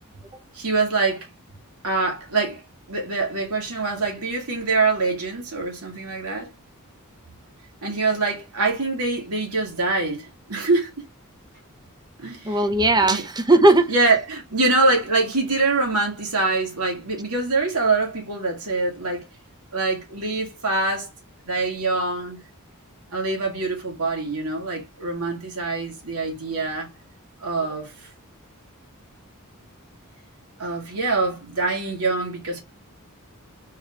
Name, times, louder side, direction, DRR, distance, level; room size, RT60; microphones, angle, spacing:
voice 1, 0.5-1.3 1.8-2.6 2.9-6.5 7.8-11.1 12.2-12.6 13.0-13.2 13.9-19.2 19.7-21.1 21.5-22.4 23.1-26.9 27.4-28.1 30.6-32.6, right 3 dB, 85° right, 2.3 m, -24 dB
voice 2, 12.4-13.9, right 2 dB, 20° right, 0.8 m, -17 dB
4.6 x 3.2 x 3.7 m
head